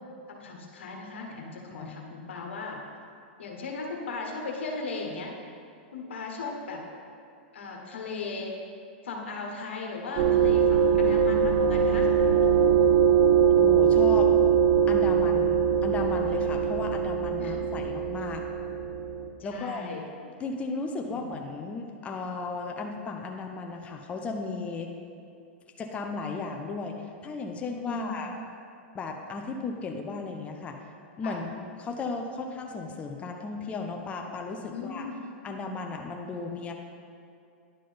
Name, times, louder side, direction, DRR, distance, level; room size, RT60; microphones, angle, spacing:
voice 1, 0.3-2.8 3.4-5.3 5.9-6.8 7.5-8.5 9.0-12.1 17.4-17.6 19.4-20.1 21.0-21.4 27.9-28.2 31.2-31.4 34.7-35.2, left 4 dB, 85° left, 0 dB, 1.3 m, -37 dB
sound 1, 10.2-19.3, right 7 dB, 50° right, 0.6 m, -22 dB
voice 2, 13.6-14.3 14.9-18.4 19.4-19.9 20.4-24.9 25.8-28.4 28.9-30.8 31.2-35.1 35.4-36.7, left 3 dB, 20° left, 2 dB, 0.6 m, -35 dB
10.0 x 3.7 x 5.1 m, 2.5 s
hypercardioid pair, 125°, 6 cm